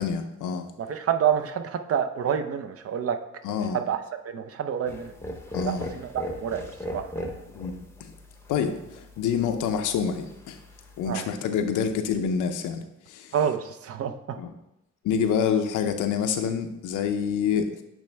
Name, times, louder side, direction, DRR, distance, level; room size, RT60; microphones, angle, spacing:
voice 1, 0.0-0.7 3.4-3.8 5.5-5.9 7.5-8.1 8.5-8.7 9.2-10.6 11.0-13.3 14.4-14.5 15.0-17.7, left 7 dB, 85° left, 7 dB, 0.7 m, -27 dB
voice 2, 0.8-3.2 3.7-4.0 4.2-5.1 5.6-7.1 11.1-11.2 13.3-14.4, right 8 dB, 50° right, 8 dB, 0.6 m, -28 dB
sound 1, 4.8-11.1, left 1 dB, 10° left, 0.8 m, -39 dB
8.8 x 3.2 x 3.4 m, 0.85 s
cardioid pair, 90°, 30 cm